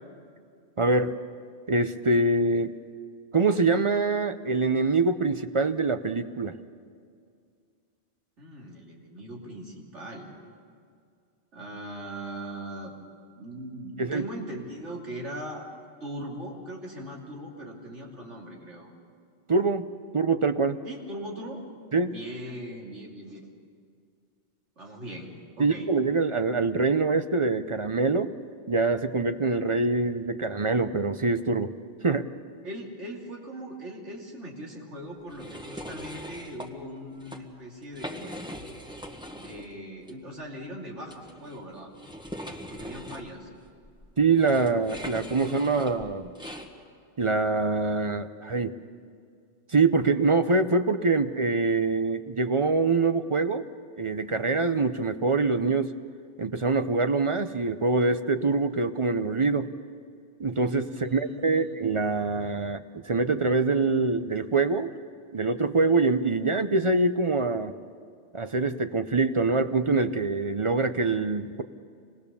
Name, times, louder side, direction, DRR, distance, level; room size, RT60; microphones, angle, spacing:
voice 1, 0.8-1.2 1.7-2.8 3.3-6.5 14.0-14.3 19.5-20.8 21.9-22.2 25.6-28.3 28.7-31.7 32.0-32.3 44.2-46.3 47.2-48.7 49.7-53.6 54.0-55.9 56.4-59.7 60.4-64.9 65.3-67.7 68.3-71.6, right 3 dB, 35° right, 10 dB, 0.6 m, -24 dB
voice 2, 8.4-10.3 11.5-12.9 13.3-15.7 16.0-18.9 20.8-21.6 22.1-23.5 24.8-25.3 25.6-25.9 32.6-38.4 39.3-41.9 42.7-43.5 61.0-61.7, right 1 dB, 85° right, -1 dB, 3.3 m, -40 dB
sound 1, 35.3-36.7 37.1-37.4 37.8-39.7 40.0-40.1 41.1-46.7, equal, 5° right, 1.5 m, -41 dB
26.0 x 20.0 x 6.9 m, 2.3 s
omnidirectional pair, 1.2 m